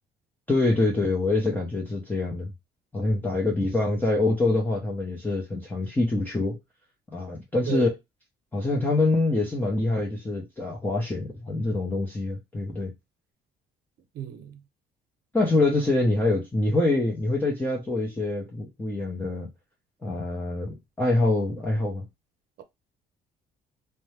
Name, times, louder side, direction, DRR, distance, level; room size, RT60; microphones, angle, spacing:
voice 1, 0.5-2.5 2.9-6.6 7.1-7.9 8.5-12.9 15.3-19.5 20.0-22.1, left 2 dB, 10° left, 0.7 m, -25 dB
voice 2, 14.1-14.6 22.6-22.7, right 9 dB, 65° right, 0.6 m, -34 dB
2.6 x 2.2 x 3.1 m
cardioid pair, 110°, 17 cm